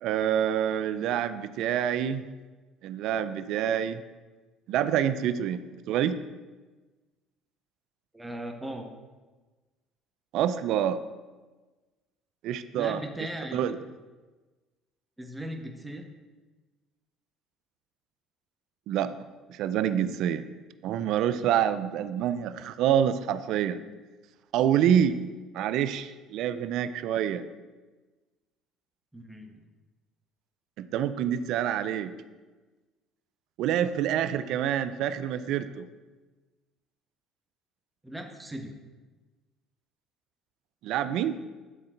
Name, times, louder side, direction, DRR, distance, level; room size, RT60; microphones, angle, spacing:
voice 1, 0.0-2.2 2.8-4.0 4.7-6.2 10.3-11.0 12.4-13.0 13.5-13.8 18.9-19.1 19.5-20.4 20.8-23.8 24.5-25.2 25.5-27.4 30.8-32.1 33.6-35.9 40.8-41.4, right 9 dB, 70° right, 12 dB, 0.4 m, -27 dB
voice 2, 8.1-8.9 12.7-13.6 15.2-16.1 29.1-29.6 38.0-38.7, right 1 dB, 10° right, 3 dB, 1.2 m, -38 dB
10.0 x 3.8 x 4.5 m, 1.3 s
supercardioid pair, 75°, 0 cm